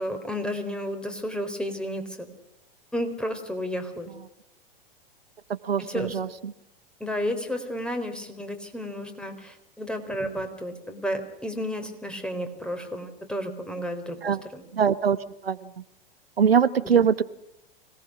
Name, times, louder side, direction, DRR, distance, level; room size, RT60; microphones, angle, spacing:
voice 1, 0.0-2.3 2.9-4.1 5.8-6.2 7.0-14.6 16.9-17.1, equal, 5° left, 6 dB, 4.0 m, -32 dB
voice 2, 5.6-6.5 14.2-14.4 14.7-15.2 15.4-15.7 16.4-17.2, right 7 dB, 85° right, 14 dB, 1.0 m, -22 dB
25.5 x 18.5 x 6.0 m, 0.84 s
hypercardioid pair, 100°, 29 cm